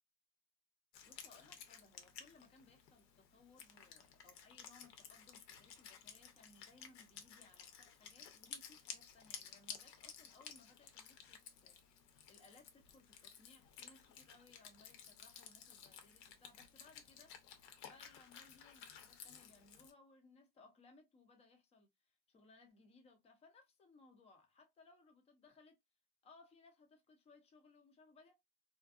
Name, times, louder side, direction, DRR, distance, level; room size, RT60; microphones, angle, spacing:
Wind instrument woodwind instrument, 0.9-19.9, left 8 dB, 85° left, 0.8 m, -55 dB
voice 1, 1.0-11.8 12.3-17.3 17.8-25.8 26.2-28.3, left 3 dB, 15° left, 0.3 m, -65 dB
2.5 x 2.4 x 2.3 m
cardioid pair, 140°, 49 cm